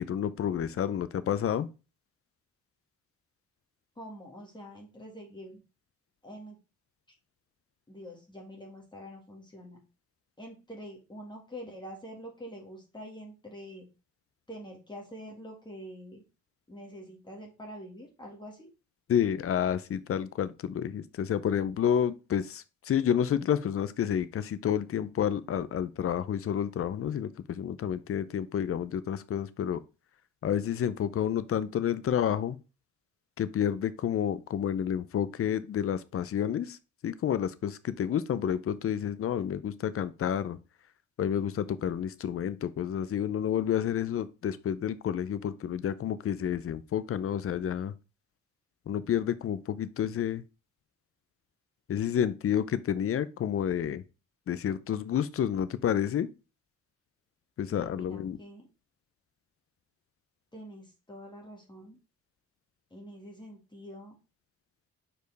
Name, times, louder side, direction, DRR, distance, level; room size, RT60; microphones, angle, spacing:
voice 1, 0.0-1.7 19.1-29.8 30.4-32.6 33.4-36.8 37.0-40.6 41.2-47.9 48.9-50.4 51.9-54.0 54.5-56.3 57.6-58.4, left 9 dB, 50° left, 0.6 m, -30 dB
voice 2, 4.0-5.6 6.2-6.6 7.9-9.8 10.4-13.9 14.5-16.2 16.7-18.7 57.7-58.6 60.5-62.0 62.9-64.1, equal, 15° left, 1.9 m, -45 dB
5.1 x 4.6 x 4.0 m
cardioid pair, 90°, 30 cm